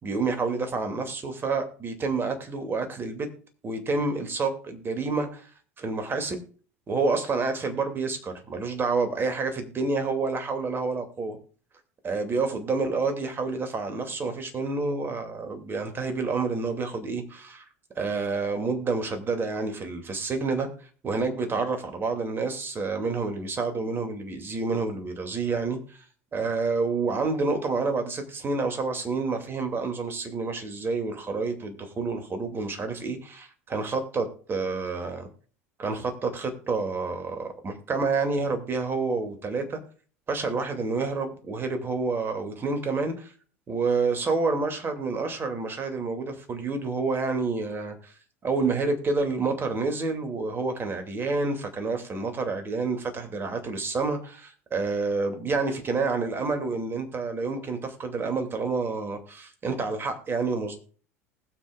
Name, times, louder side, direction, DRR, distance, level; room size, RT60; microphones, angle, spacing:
voice 1, 0.0-3.3 3.6-5.5 5.8-6.4 6.9-11.4 12.0-17.6 18.0-20.7 21.0-26.0 26.3-35.3 35.8-39.8 40.3-43.3 43.7-48.1 48.4-60.8, right 4 dB, 30° right, 6 dB, 2.5 m, -28 dB
20.0 x 7.6 x 2.4 m, 0.41 s
figure-of-eight pair, 70°, 8 cm